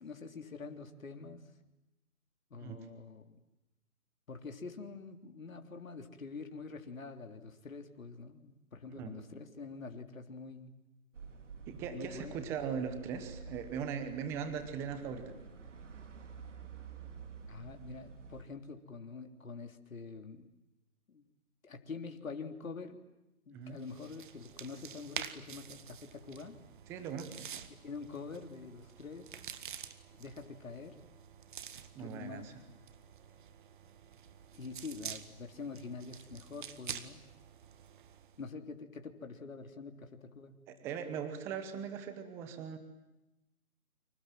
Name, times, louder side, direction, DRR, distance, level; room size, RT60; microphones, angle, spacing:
voice 1, 0.0-1.4 2.5-3.4 4.3-10.7 11.9-12.4 17.5-20.5 21.1-21.3 21.6-23.0 23.5-26.6 27.7-29.4 30.1-31.0 32.0-32.5 34.5-37.2 38.4-40.6, left 4 dB, 65° left, 6 dB, 3.5 m, -46 dB
voice 2, 2.5-2.9 8.9-9.2 11.7-15.3 23.5-23.8 26.9-27.5 31.9-32.5 40.7-42.8, right 7 dB, 5° right, 10 dB, 0.9 m, -40 dB
sound 1, 11.1-18.4, right 5 dB, 55° right, 3.5 m, -50 dB
sound 2, 23.7-38.4, right 8 dB, 35° right, 1.7 m, -48 dB
30.0 x 26.5 x 7.6 m, 0.98 s
figure-of-eight pair, 155°, 44 cm